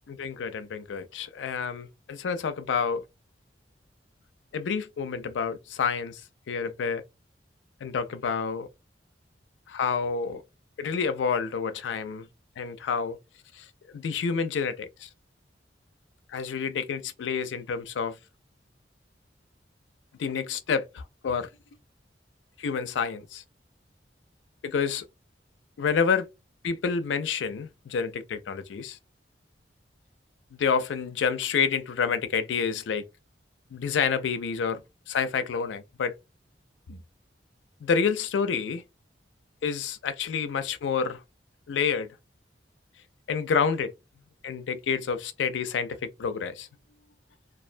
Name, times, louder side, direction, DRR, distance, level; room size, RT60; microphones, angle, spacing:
voice 1, 0.1-3.0 4.5-6.2 6.5-7.0 7.8-8.7 9.7-10.4 10.8-12.3 12.6-13.2 13.5-15.1 16.3-18.2 20.2-21.5 22.6-23.4 24.6-25.1 25.8-26.3 26.6-29.0 30.5-33.1 33.7-36.2 36.9-37.0 37.8-38.8 39.6-41.2 41.7-42.2 43.3-43.9 44.4-46.7, left 6 dB, 80° left, 0.4 m, -28 dB
2.3 x 2.1 x 2.5 m
head